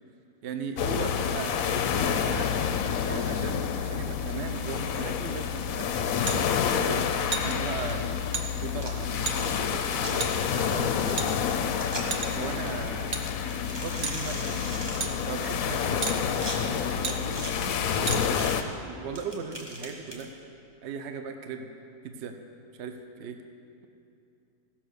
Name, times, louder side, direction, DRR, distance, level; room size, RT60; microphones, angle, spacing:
voice 1, 0.4-2.5 3.0-8.0 8.6-11.7 12.3-13.2 13.7-15.0 15.3-17.4 17.9-18.6 18.9-20.3 20.8-21.7 22.0-22.4 22.8-23.4, right 5 dB, 55° right, 6 dB, 0.8 m, -38 dB
sound 1, 0.8-18.6, left 7 dB, 65° left, 0.9 m, -28 dB
sound 2, 6.3-6.4 7.3-7.5 8.3-8.5 9.3-9.4 10.2-10.3 11.2-11.6 12.1-12.5 13.1-13.2 14.0-14.2 15.0-15.1 16.0-16.2 17.0-17.2 18.1-18.2, right 5 dB, 90° right, 0.3 m, -31 dB
sound 3, 8.8-9.1 9.8-10.1 11.1-11.2 11.7-12.2 12.6-12.7 13.5-15.0 15.8-16.6 17.1-17.5 18.4-18.6 19.2-20.3, equal, 15° right, 1.3 m, -39 dB
16.5 x 5.8 x 6.5 m, 2.6 s
omnidirectional pair, 1.9 m